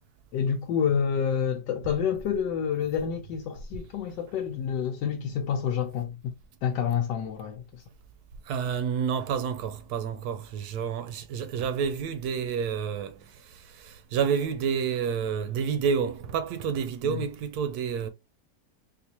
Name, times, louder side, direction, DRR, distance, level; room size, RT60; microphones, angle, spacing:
voice 1, 0.3-6.3 6.6-7.8 17.0-17.2, left 7 dB, 85° left, 1.2 m, -28 dB
voice 2, 8.5-13.1 13.8-18.1, right 7 dB, 70° right, 1.0 m, -29 dB
3.8 x 2.5 x 2.8 m
omnidirectional pair, 1.9 m